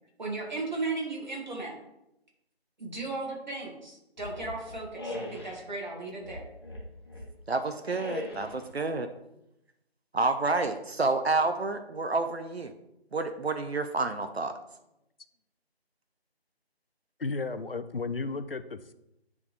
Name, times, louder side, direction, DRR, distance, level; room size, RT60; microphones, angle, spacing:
voice 1, 0.2-1.8 2.8-6.4, right 3 dB, 45° right, -2 dB, 1.9 m, -36 dB
sound 1, 4.2-5.6 6.2-7.3 7.9-8.7, left 1 dB, 25° left, 1.1 m, -40 dB
voice 2, 7.5-9.1 10.1-12.7 13.1-14.5, right 3 dB, 75° right, 8 dB, 0.7 m, -29 dB
voice 3, 17.2-18.9, left 3 dB, 60° left, 11 dB, 0.5 m, -33 dB
9.5 x 3.6 x 3.3 m, 0.86 s
figure-of-eight pair, 160°, 32 cm